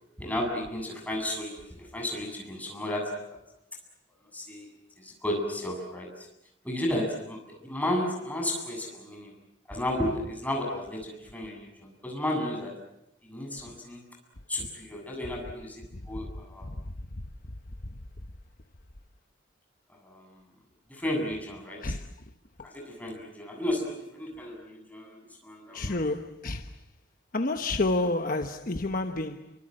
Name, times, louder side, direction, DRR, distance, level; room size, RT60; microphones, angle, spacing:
voice 1, 0.2-3.4 4.3-4.7 5.0-6.3 6.6-9.3 9.7-12.7 13.3-14.0 14.5-16.7 20.0-20.4 20.9-21.9 22.6-26.0, left 1 dB, 10° left, 7.6 m, -33 dB
voice 2, 25.7-26.7 27.3-29.5, left 2 dB, 45° left, 1.1 m, -29 dB
29.0 x 25.0 x 7.7 m
head